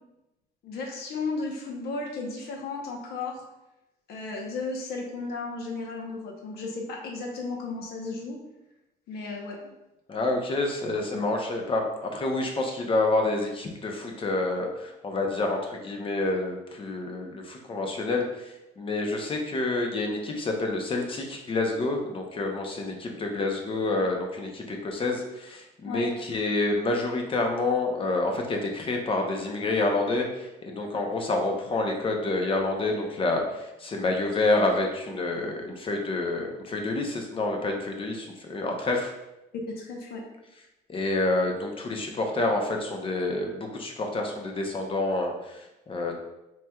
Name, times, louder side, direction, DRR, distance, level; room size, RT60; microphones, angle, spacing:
voice 1, 0.6-3.4 4.1-8.4 9.1-9.6 11.1-11.3 25.9-26.1 39.7-40.2, left 3 dB, 70° left, 0 dB, 0.9 m, -34 dB
voice 2, 10.1-39.1 40.9-46.2, left 2 dB, 30° left, 2 dB, 0.7 m, -28 dB
4.3 x 3.2 x 2.3 m, 0.93 s
cardioid pair, 110°, 17 cm